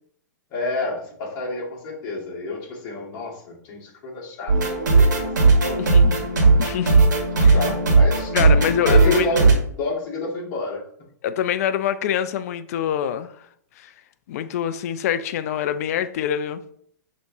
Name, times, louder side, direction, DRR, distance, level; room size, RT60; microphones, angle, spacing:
voice 1, 0.5-5.3 5.7-5.8 7.2-8.3 8.8-10.9, left 2 dB, 40° left, 1.8 m, -29 dB
sound 1, 4.5-9.5, right 3 dB, 80° right, 1.5 m, -17 dB
voice 2, 5.8-6.3 6.6-7.0 7.4-7.5 8.3-9.3 11.2-13.3 13.8-13.9 14.3-16.6, left 9 dB, 55° left, 0.4 m, -25 dB
6.2 x 3.1 x 2.7 m
hypercardioid pair, 120°, 10 cm